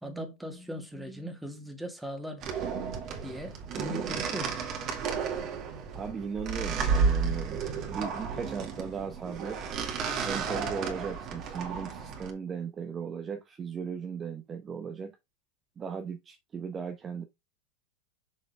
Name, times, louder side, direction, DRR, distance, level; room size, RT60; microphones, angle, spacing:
voice 1, 0.0-2.6 3.2-4.6, equal, 5° right, 2.1 m, -39 dB
sound 1, 2.4-12.3, right 5 dB, 40° right, 2.1 m, -32 dB
voice 2, 5.9-7.6 7.9-9.7 10.2-15.2 15.8-17.2, right 6 dB, 25° right, 0.9 m, -37 dB
6.5 x 6.0 x 3.5 m
supercardioid pair, 120°, 0 cm